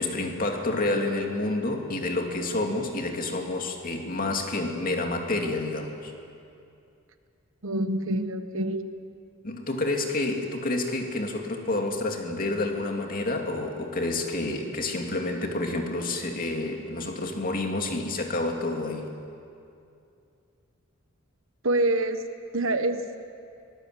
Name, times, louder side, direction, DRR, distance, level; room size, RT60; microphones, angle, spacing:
voice 1, 0.0-6.1 9.4-19.1, left 2 dB, 45° left, 2 dB, 2.6 m, -29 dB
voice 2, 7.6-8.8 21.6-22.2 22.5-23.2, right 2 dB, 70° right, 8 dB, 1.4 m, -26 dB
24.5 x 19.5 x 7.9 m, 2.6 s
head